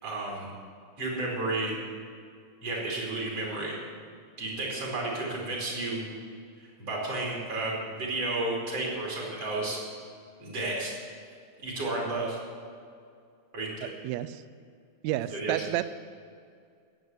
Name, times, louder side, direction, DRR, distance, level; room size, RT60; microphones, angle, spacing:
voice 1, 0.0-0.5 1.0-1.8 2.6-3.8 4.4-6.1 6.6-9.8 10.4-10.9 11.6-12.4 13.5-13.9 15.3-15.6, right 2 dB, 55° right, -3 dB, 3.9 m, -32 dB
voice 2, 14.0-14.4 15.0-15.8, right 14 dB, 80° right, 15 dB, 1.8 m, -30 dB
16.0 x 7.1 x 9.3 m, 2.2 s
omnidirectional pair, 3.3 m